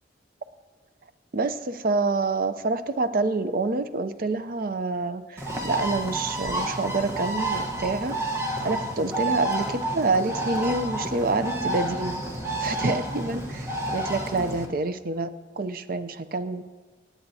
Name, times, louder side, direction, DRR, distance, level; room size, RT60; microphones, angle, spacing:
voice 1, 1.3-12.2 12.6-16.6, right 3 dB, 50° right, 11 dB, 0.6 m, -27 dB
Bird, 5.4-14.6, right 1 dB, 15° right, 1.1 m, -30 dB
26.0 x 9.0 x 2.8 m, 1.4 s
head